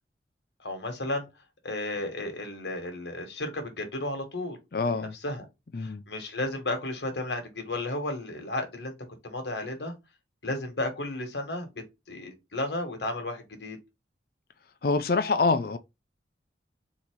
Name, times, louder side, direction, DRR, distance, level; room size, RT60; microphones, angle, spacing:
voice 1, 0.6-1.3 1.6-4.6 4.9-5.4 5.8-8.9 9.2-9.9 10.4-11.8 12.1-13.8, left 2 dB, 80° left, 1.5 m, -33 dB
voice 2, 4.7-5.1 5.7-6.0 14.8-15.8, left 3 dB, 55° left, 0.5 m, -25 dB
4.1 x 2.9 x 4.5 m
head